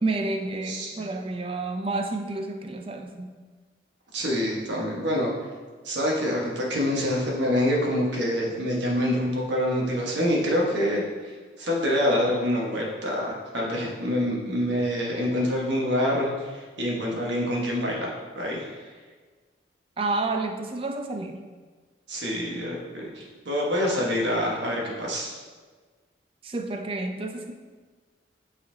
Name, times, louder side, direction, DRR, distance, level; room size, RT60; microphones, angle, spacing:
voice 1, 0.0-3.3 20.0-21.5 26.4-27.5, right 2 dB, 30° right, 5 dB, 0.4 m, -30 dB
voice 2, 0.6-1.1 4.1-5.3 5.8-18.7 22.1-25.4, equal, 75° right, -2 dB, 1.3 m, -26 dB
8.8 x 4.2 x 2.8 m, 1.4 s
head